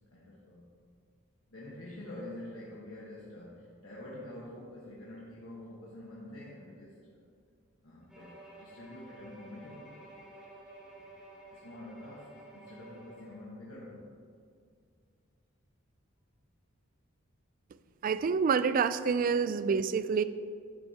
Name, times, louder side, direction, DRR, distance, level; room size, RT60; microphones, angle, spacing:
voice 1, 0.1-0.7 1.5-7.2 7.8-10.0 11.5-14.1 20.1-20.2, left 1 dB, 80° left, -6 dB, 1.4 m, -47 dB
Bowed string instrument, 8.1-13.4, right 1 dB, 5° right, 2.4 m, -52 dB
voice 2, 18.0-20.2, right 5 dB, 45° right, 14 dB, 0.3 m, -27 dB
11.0 x 7.9 x 2.9 m, 2.2 s
head